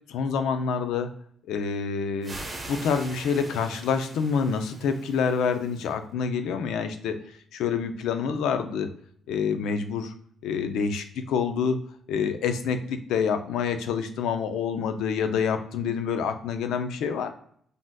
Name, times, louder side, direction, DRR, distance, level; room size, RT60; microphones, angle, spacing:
voice 1, 0.1-1.1 1.5-2.4 2.7-7.2 7.5-8.9 9.3-10.1 10.4-11.8 12.1-17.3, left 6 dB, 85° left, 9 dB, 0.3 m, -27 dB
sound 1, 2.2-5.9, right 2 dB, 30° right, 1.0 m, -42 dB
3.4 x 2.5 x 2.3 m, 0.63 s
cardioid pair, 90°, 0 cm